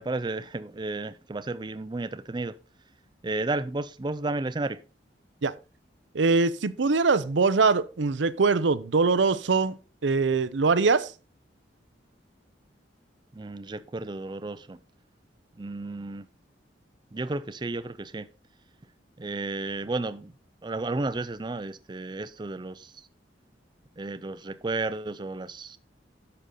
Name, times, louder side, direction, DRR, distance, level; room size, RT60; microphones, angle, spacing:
voice 1, 0.0-2.5 3.2-4.8 13.3-14.8 15.6-16.2 17.1-18.3 19.2-20.3 20.6-23.1 24.0-25.8, right 2 dB, 25° right, 0.4 m, -32 dB
voice 2, 6.1-11.1, right 4 dB, 75° right, 0.6 m, -23 dB
11.0 x 6.9 x 3.8 m
head